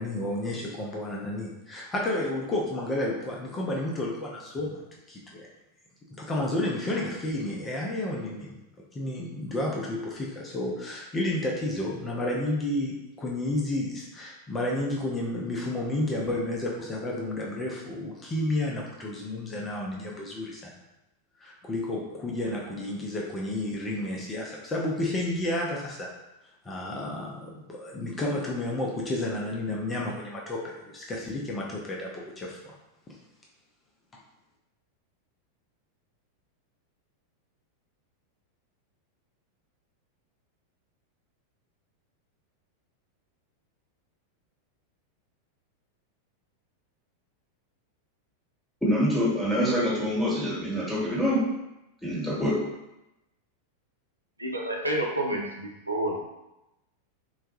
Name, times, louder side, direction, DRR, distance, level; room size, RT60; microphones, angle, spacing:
voice 1, 0.0-4.8 5.1-5.5 6.2-8.5 8.9-20.7 21.4-26.1 26.6-32.8, left 1 dB, 20° left, -2 dB, 0.5 m, -31 dB
voice 2, 48.8-51.4 52.0-52.6, equal, ahead, -7 dB, 1.2 m, -25 dB
voice 3, 54.4-56.2, right 1 dB, 85° right, 0 dB, 0.5 m, -29 dB
3.7 x 2.2 x 2.9 m, 0.93 s
figure-of-eight pair, 90°, 0 cm